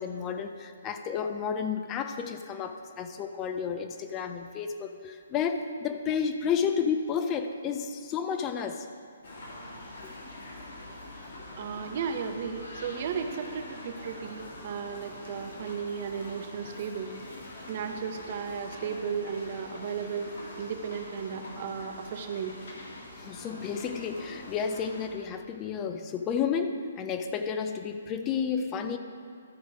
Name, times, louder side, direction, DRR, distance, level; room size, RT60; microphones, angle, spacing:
voice 1, 0.0-8.9 10.0-10.1 23.2-29.0, left 6 dB, 20° left, 7 dB, 0.4 m, -31 dB
sound 1, 9.2-25.1, left 1 dB, 55° left, 1.8 m, -44 dB
voice 2, 11.6-17.1 17.7-22.6, right 6 dB, 40° right, 6 dB, 0.7 m, -35 dB
13.5 x 5.0 x 4.8 m, 2.2 s
figure-of-eight pair, 130°, 0 cm